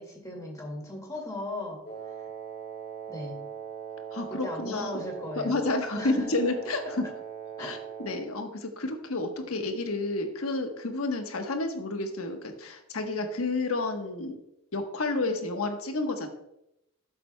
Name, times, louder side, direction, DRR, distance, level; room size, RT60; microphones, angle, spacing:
voice 1, 0.0-1.8 3.1-3.4 4.3-5.6 6.0-6.2 7.6-7.7, left 1 dB, 15° left, 0 dB, 2.0 m, -37 dB
Wind instrument woodwind instrument, 1.8-8.3, right 8 dB, 50° left, 1.6 m, -40 dB
voice 2, 4.1-5.0 5.4-7.0 7.6-14.4 14.7-16.3, left 2 dB, 75° left, 5 dB, 1.2 m, -30 dB
12.5 x 7.6 x 2.2 m, 0.82 s
head